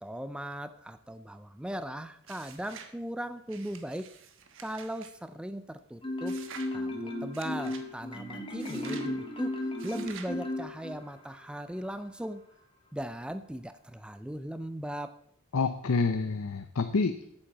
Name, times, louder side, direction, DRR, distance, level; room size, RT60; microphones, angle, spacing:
voice 1, 0.0-4.1 4.6-6.4 6.7-9.6 9.8-12.4 12.9-15.1, right 1 dB, 5° right, 11 dB, 0.4 m, -38 dB
sound 1, 2.2-3.0 3.5-5.1 6.3-6.7 7.3-7.9 8.6-9.1 9.8-10.4, right 7 dB, 65° right, 1.2 m, -48 dB
Marimba xylophone, 6.0-11.2, left 1 dB, 25° left, 1.8 m, -35 dB
voice 2, 15.5-17.2, left 4 dB, 80° left, 9 dB, 0.6 m, -28 dB
8.6 x 7.7 x 7.0 m, 0.70 s
head